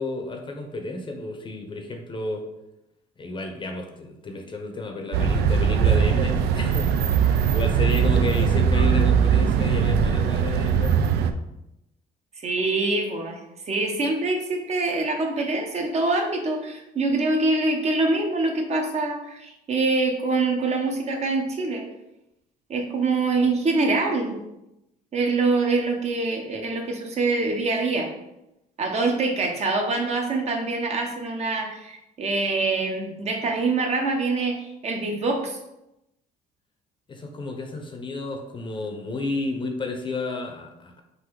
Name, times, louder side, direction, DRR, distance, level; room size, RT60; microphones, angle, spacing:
voice 1, 0.0-2.4 3.2-11.1 37.1-41.0, left 2 dB, 30° left, 3 dB, 0.7 m, -31 dB
sound 1, 5.1-11.3, right 7 dB, 75° right, 0.4 m, -20 dB
voice 2, 12.4-13.4 13.7-21.8 22.7-24.4 25.1-28.1 28.8-35.6, right 3 dB, 40° right, 3 dB, 0.8 m, -25 dB
3.9 x 2.6 x 4.6 m, 0.89 s
cardioid pair, 110°, 17 cm